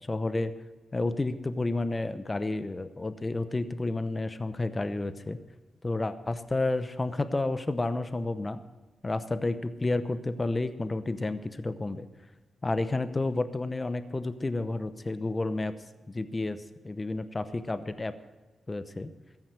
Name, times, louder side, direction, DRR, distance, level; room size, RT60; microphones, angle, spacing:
voice 1, 0.1-0.5 0.9-5.4 5.8-8.6 9.0-12.1 12.6-15.7 16.1-18.1 18.7-19.1, left 2 dB, 25° left, 11 dB, 0.8 m, -30 dB
14.0 x 9.6 x 6.6 m, 1.2 s
cardioid pair, 90°, 0 cm